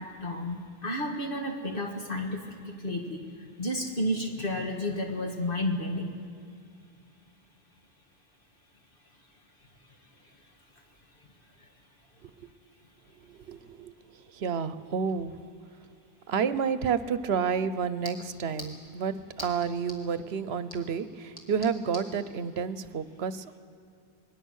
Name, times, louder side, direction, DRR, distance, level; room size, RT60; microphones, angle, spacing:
voice 1, 0.0-6.1, left 1 dB, 55° left, 1 dB, 2.0 m, -32 dB
voice 2, 13.3-15.4 16.3-23.6, right 6 dB, 75° right, 13 dB, 1.0 m, -30 dB
sound 1, 16.8-22.1, left 1 dB, 20° left, 2.8 m, -48 dB
26.5 x 21.0 x 6.4 m, 2.2 s
omnidirectional pair, 1.1 m